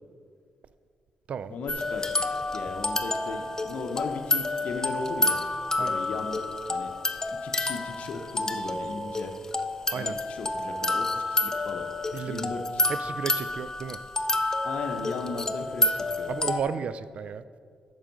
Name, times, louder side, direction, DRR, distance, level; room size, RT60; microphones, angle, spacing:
voice 1, 1.5-2.0 2.5-5.4 5.8-6.4 6.7-6.9 7.3-9.4 9.9-11.9 12.3-12.9 14.6-16.3, left 4 dB, 70° left, 3 dB, 0.7 m, -36 dB
sound 1, 1.7-16.6, left 2 dB, 25° left, 0.5 m, -29 dB
voice 2, 12.1-12.6 12.9-14.0 15.3-15.4 16.3-17.4, right 7 dB, 60° right, 14 dB, 0.4 m, -34 dB
8.9 x 6.3 x 5.3 m, 2.1 s
cardioid pair, 75°, 2 cm